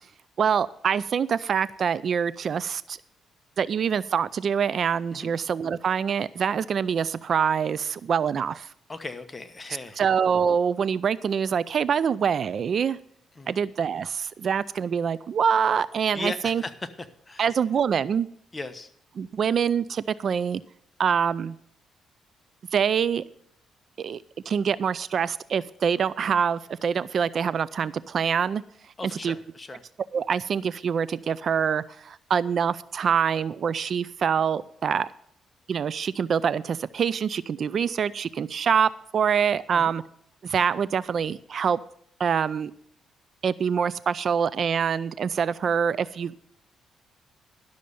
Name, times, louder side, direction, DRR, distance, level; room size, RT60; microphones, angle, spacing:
voice 1, 0.4-3.0 3.6-8.7 10.0-13.0 13.5-16.6 17.4-18.3 19.2-20.6 21.0-21.5 22.7-23.2 24.0-24.2 24.5-28.6 29.2-29.3 30.1-35.1 35.7-40.0 40.4-41.8 42.2-42.7 43.4-46.4, right 7 dB, 50° right, 18 dB, 0.3 m, -25 dB
voice 2, 8.9-10.0 13.4-13.6 16.1-17.4 18.5-18.9 29.0-29.8 39.7-39.9, left 2 dB, 20° left, 8 dB, 1.0 m, -37 dB
12.0 x 6.4 x 6.9 m, 0.66 s
cardioid pair, 110°, 0 cm